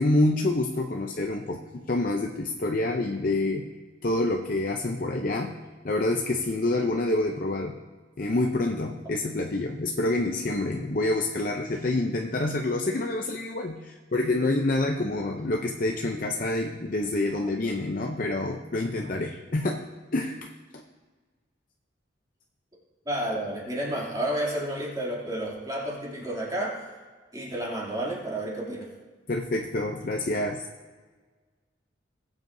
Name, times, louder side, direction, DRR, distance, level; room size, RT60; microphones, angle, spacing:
voice 1, 0.0-3.6 4.0-5.5 5.8-7.7 8.2-19.8 20.1-20.8 29.3-30.7, left 2 dB, 45° left, 2 dB, 0.6 m, -27 dB
voice 2, 23.1-26.9 27.3-28.9, right 1 dB, 20° right, -4 dB, 2.7 m, -31 dB
19.5 x 8.0 x 2.7 m, 1.4 s
head